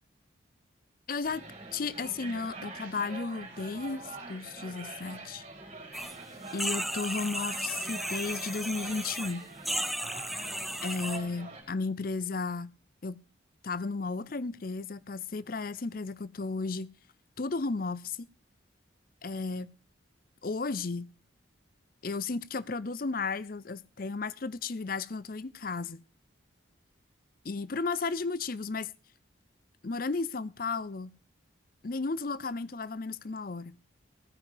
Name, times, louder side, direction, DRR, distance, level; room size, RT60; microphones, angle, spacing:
voice 1, 1.1-1.5 1.7-4.0 4.3-5.4 6.5-9.5 10.8-12.7 13.0-13.2 13.6-16.9 17.4-18.3 19.2-19.7 20.4-21.1 22.0-26.0 27.4-28.9 29.8-31.1 31.8-33.8, left 4 dB, 45° left, 0.6 m, -34 dB
sound 1, 1.2-11.6, right 3 dB, 35° right, 5.2 m, -45 dB
sound 2, 5.9-6.2 6.5-9.3 9.6-11.2, equal, ahead, 0.8 m, -35 dB
15.5 x 9.7 x 4.9 m
head